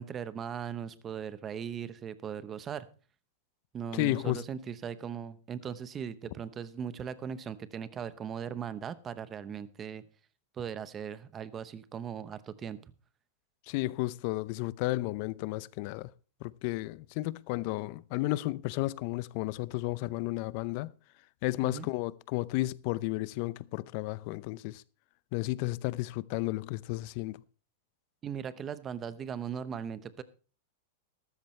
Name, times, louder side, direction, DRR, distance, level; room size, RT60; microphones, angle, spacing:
voice 1, 0.0-2.9 3.7-10.0 10.5-12.9 21.6-21.9 28.2-30.2, right 8 dB, 20° right, 0.8 m, -39 dB
voice 2, 3.9-4.4 13.7-16.1 16.4-20.9 21.4-24.8 25.3-27.4, left 19 dB, 45° left, 0.5 m, -33 dB
13.5 x 13.5 x 3.2 m
supercardioid pair, 150°, 0 cm